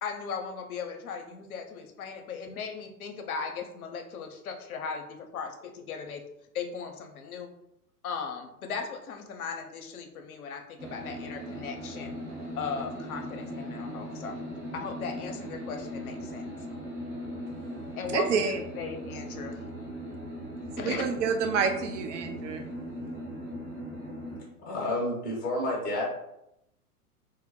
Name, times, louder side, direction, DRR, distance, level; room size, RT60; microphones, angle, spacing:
voice 1, 0.0-6.2 6.5-7.5 8.0-12.1 12.6-14.4 14.7-16.5 18.0-19.6 20.8-21.0, left 5 dB, 70° left, 4 dB, 0.6 m, -37 dB
sound 1, 10.8-24.4, equal, 20° right, 0.9 m, -39 dB
voice 2, 18.1-18.6 20.8-22.7, right 5 dB, 55° right, 5 dB, 0.5 m, -28 dB
voice 3, 24.6-26.1, left 1 dB, 20° left, -3 dB, 0.7 m, -30 dB
2.1 x 2.0 x 2.9 m, 0.82 s
figure-of-eight pair, 105°, 46 cm